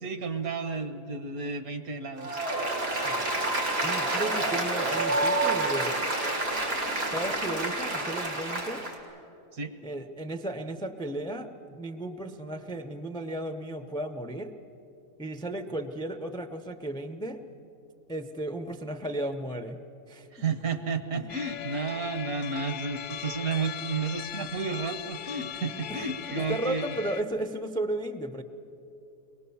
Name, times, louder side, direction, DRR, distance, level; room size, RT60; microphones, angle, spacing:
voice 1, 0.0-2.4 9.5-9.7 20.3-26.9, right 4 dB, 65° right, 9 dB, 1.5 m, -32 dB
Applause, 2.2-8.9, right 2 dB, 90° right, 3.3 m, -28 dB
voice 2, 3.8-5.9 7.1-8.9 9.8-14.6 15.2-17.4 18.1-19.8 20.1-20.3 21.1-21.2 25.9-28.4, right 1 dB, 5° left, 9 dB, 0.3 m, -34 dB
sound 1, 21.3-27.2, left 11 dB, 75° left, 1.2 m, -39 dB
22.5 x 19.0 x 7.1 m, 2.8 s
omnidirectional pair, 1.7 m